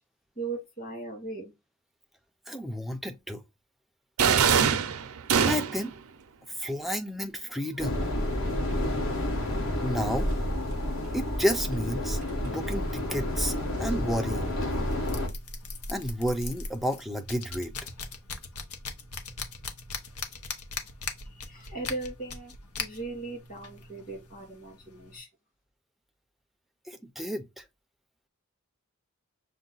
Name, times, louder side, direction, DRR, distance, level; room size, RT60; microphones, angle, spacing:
voice 1, 0.4-1.5 21.3-25.3, right 3 dB, 40° left, 2.3 m, -38 dB
voice 2, 2.5-3.4 5.3-5.9 6.6-8.0 9.8-10.3 11.1-13.5 13.8-14.6 15.9-17.7 26.9-27.6, equal, ahead, 0.4 m, -31 dB
sound 1, 4.2-5.9, right 7 dB, 75° right, 0.5 m, -23 dB
sound 2, 7.8-15.3, left 1 dB, 65° left, 1.6 m, -30 dB
sound 3, 12.6-25.2, left 4 dB, 85° left, 0.8 m, -41 dB
6.3 x 2.2 x 3.9 m
head